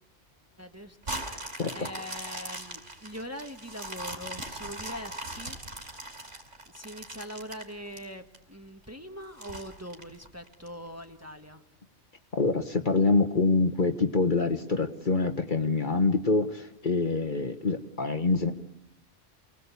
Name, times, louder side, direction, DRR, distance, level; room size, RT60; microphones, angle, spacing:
voice 1, 0.6-5.6 6.7-11.6, equal, 15° right, 6 dB, 1.5 m, -42 dB
sound 1, 1.0-8.4 8.8-8.9 9.4-10.7 11.2-11.3, right 1 dB, 80° right, 4.9 m, -40 dB
voice 2, 12.3-18.5, left 3 dB, 40° left, 6 dB, 1.5 m, -25 dB
28.5 x 19.5 x 8.4 m, 0.80 s
omnidirectional pair, 1.3 m